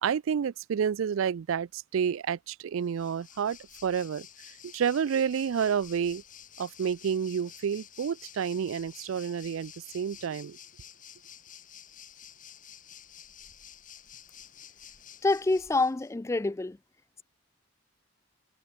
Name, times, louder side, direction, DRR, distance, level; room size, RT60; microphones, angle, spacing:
voice 1, 0.0-4.3 4.6-6.2 6.6-10.6, right 7 dB, 75° right, 0.4 m, -29 dB
Waves surf, 2.8-16.1, left 9 dB, 40° left, 6.6 m, -51 dB
voice 2, 15.2-16.8, left 3 dB, 15° left, 0.3 m, -26 dB
head